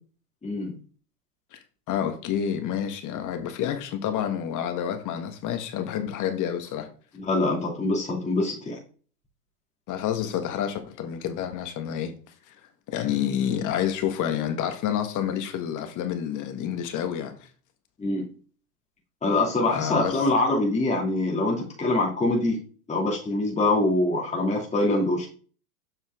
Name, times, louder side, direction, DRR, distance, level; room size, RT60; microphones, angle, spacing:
voice 1, 0.4-0.7 7.1-8.8 18.0-18.2 19.2-22.6 22.9-25.3, left 2 dB, 15° left, 2.6 m, -24 dB
voice 2, 1.5-6.9 9.9-12.1 12.5-12.6 12.9-17.5 19.7-20.3, left 9 dB, 40° left, 1.6 m, -29 dB
7.2 x 5.5 x 3.6 m
hypercardioid pair, 100°, 47 cm